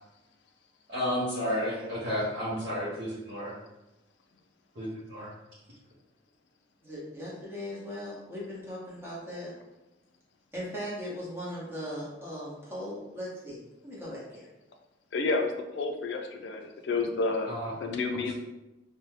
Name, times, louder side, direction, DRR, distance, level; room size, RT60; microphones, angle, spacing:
voice 1, 0.9-3.5 4.7-5.3 17.5-17.7 18.1-18.4, equal, 55° right, -10 dB, 0.8 m, -32 dB
voice 2, 6.8-9.5 10.5-13.6 13.8-14.5, equal, 15° right, -7 dB, 0.8 m, -38 dB
voice 3, 15.1-17.5 17.8-18.4, left 3 dB, 65° left, 4 dB, 0.4 m, -30 dB
2.7 x 2.2 x 3.1 m, 0.98 s
head